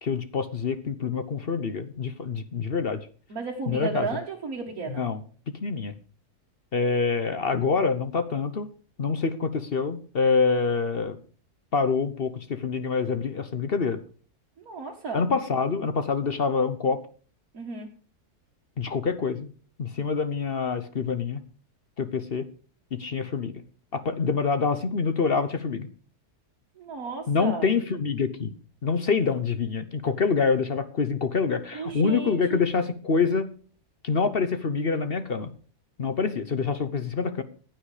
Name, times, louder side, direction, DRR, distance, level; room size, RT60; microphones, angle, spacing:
voice 1, 0.0-3.0 3.7-4.1 4.9-5.2 5.6-5.9 6.7-8.7 9.0-11.2 11.7-14.0 15.1-17.0 18.8-19.5 19.8-21.4 22.0-22.4 22.9-23.5 23.9-25.9 27.3-28.5 28.8-33.5 34.0-35.5 36.0-37.4, left 5 dB, 45° left, 11 dB, 1.0 m, -26 dB
voice 2, 3.3-5.1 14.6-15.2 17.5-17.9 26.8-27.7 31.7-32.6, right 4 dB, 65° right, -2 dB, 2.2 m, -33 dB
15.5 x 9.0 x 5.0 m, 0.41 s
omnidirectional pair, 1.6 m